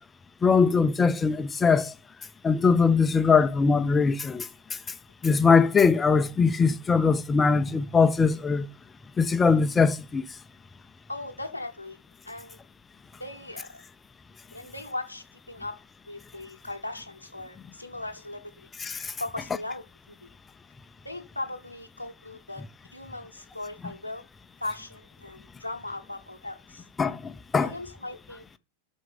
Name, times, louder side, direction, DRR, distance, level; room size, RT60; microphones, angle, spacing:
voice 1, 0.4-1.9 2.4-4.5 5.2-8.7 9.2-10.2 18.8-19.1 27.0-27.7, left 5 dB, 15° left, 0.7 m, -21 dB
voice 2, 11.1-12.0 12.2-12.6 13.2-13.8 14.5-15.8 16.1-18.7 19.2-20.3 21.0-22.6 22.9-24.2 24.6-26.9 27.6-28.6, left 2 dB, 90° left, 0.9 m, -38 dB
12.5 x 6.3 x 5.5 m
figure-of-eight pair, 90°, 0 cm